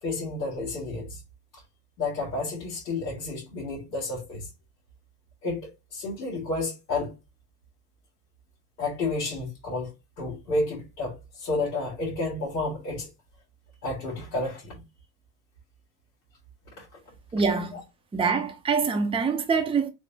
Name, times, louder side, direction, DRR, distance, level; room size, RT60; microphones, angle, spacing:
voice 1, 0.0-1.2 2.0-4.5 5.4-7.1 8.8-13.1 13.8-14.7 16.8-16.9, left 2 dB, 90° left, 1.7 m, -31 dB
voice 2, 17.3-17.8 18.1-19.9, right 5 dB, 10° right, 0.7 m, -25 dB
4.2 x 2.7 x 2.8 m
hypercardioid pair, 85°, 49 cm